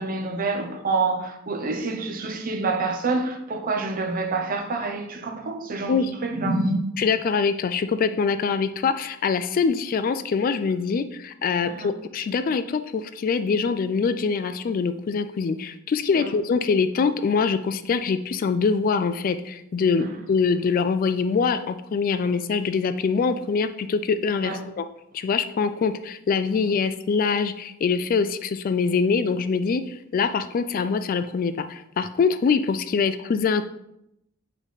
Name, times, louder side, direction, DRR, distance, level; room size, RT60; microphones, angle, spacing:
voice 1, 0.0-6.8 11.6-11.9 16.1-16.3 20.0-20.1 24.4-24.6, right 3 dB, 45° right, 0.7 m, -27 dB
voice 2, 7.0-24.8 25.1-33.6, left 5 dB, 45° left, 0.3 m, -24 dB
7.3 x 3.3 x 4.0 m
head